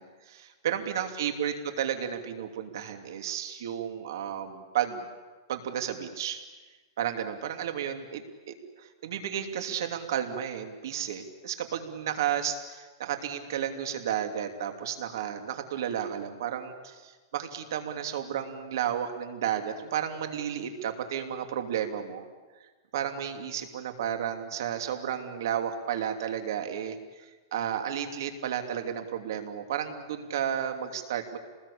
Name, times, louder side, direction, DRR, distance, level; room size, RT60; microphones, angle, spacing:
voice 1, 0.0-5.1 5.5-6.4 7.0-22.2 22.9-31.4, right 9 dB, 65° right, 6 dB, 2.9 m, -32 dB
27.0 x 20.0 x 8.6 m, 1.3 s
supercardioid pair, 160°, 2 cm